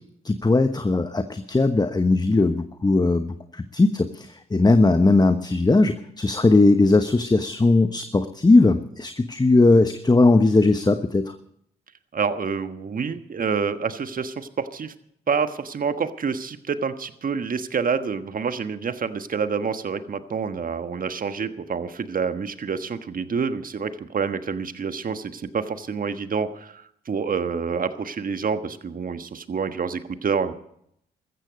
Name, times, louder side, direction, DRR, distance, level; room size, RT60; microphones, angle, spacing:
voice 1, 0.2-11.3, left 2 dB, 20° left, 9 dB, 1.1 m, -19 dB
voice 2, 12.1-14.9 15.3-30.5, right 5 dB, 50° right, 10 dB, 1.4 m, -27 dB
15.5 x 14.0 x 5.2 m, 0.72 s
hypercardioid pair, 40°, 19 cm